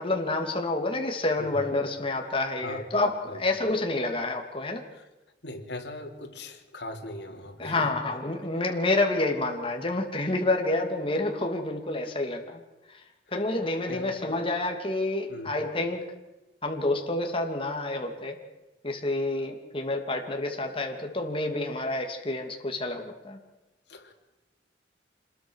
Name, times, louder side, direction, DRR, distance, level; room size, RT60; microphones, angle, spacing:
voice 1, 0.0-3.1 3.4-4.8 7.6-12.6 12.9-13.0 13.3-16.0 16.6-18.4 18.8-23.4, left 2 dB, 30° left, 3 dB, 2.8 m, -28 dB
voice 2, 5.4-7.9 13.5-13.6 13.9-14.2 15.3-15.5 23.9-24.1, left 1 dB, 75° left, 3 dB, 3.3 m, -39 dB
27.0 x 21.0 x 6.6 m, 1.0 s
head